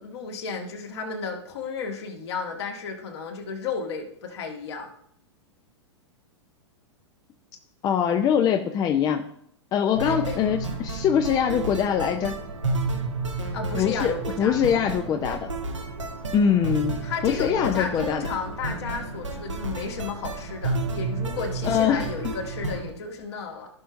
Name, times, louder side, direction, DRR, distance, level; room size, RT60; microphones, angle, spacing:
voice 1, 0.0-4.9 10.0-10.6 13.5-14.6 17.0-23.7, left 5 dB, 60° left, 2 dB, 1.8 m, -33 dB
voice 2, 7.8-9.2 9.7-12.4 13.7-15.5 16.3-18.3 21.6-22.1, left 8 dB, 25° left, 6 dB, 0.6 m, -23 dB
sound 1, 9.9-22.9, right 3 dB, 85° right, 1.4 m, -31 dB
15.5 x 5.6 x 2.6 m, 0.69 s
figure-of-eight pair, 100°, 15 cm